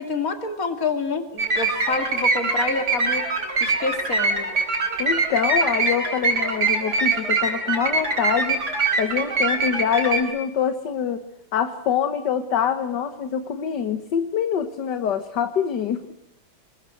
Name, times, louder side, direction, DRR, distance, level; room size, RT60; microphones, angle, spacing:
voice 1, 0.0-3.3 3.6-4.5, left 4 dB, 45° left, 7 dB, 3.0 m, -27 dB
sound 1, 1.4-10.2, right 3 dB, 55° right, 4.8 m, -23 dB
voice 2, 5.0-8.6 9.0-11.2 11.5-16.0, left 7 dB, 65° left, 10 dB, 1.8 m, -25 dB
27.0 x 21.0 x 7.8 m, 0.84 s
omnidirectional pair, 2.1 m